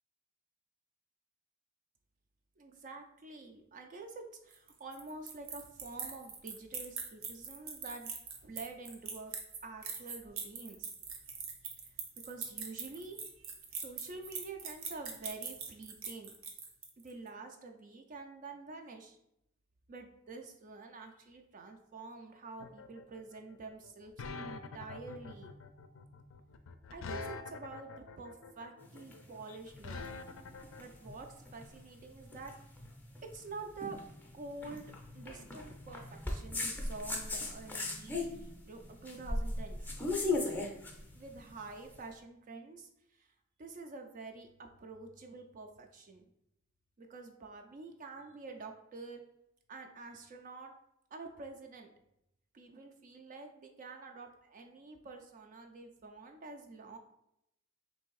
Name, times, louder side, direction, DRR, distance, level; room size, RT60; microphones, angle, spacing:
voice 1, 2.6-8.1 8.4-9.3 9.6-10.9 12.3-16.3 17.0-19.2 19.9-25.5 26.9-30.0 30.8-32.5 33.3-34.0 34.3-39.9 41.1-43.3 43.6-46.2 47.0-49.2 49.7-50.7 51.1-51.9 52.5-57.0, right 3 dB, 40° right, 4 dB, 0.4 m, -48 dB
sound 1, 4.5-17.1, right 6 dB, 85° right, 0.7 m, -42 dB
sound 2, 22.6-30.8, left 4 dB, 70° left, 0.4 m, -45 dB
sound 3, 28.8-42.0, left 2 dB, 10° left, 0.6 m, -39 dB
3.3 x 2.7 x 4.6 m, 0.80 s
head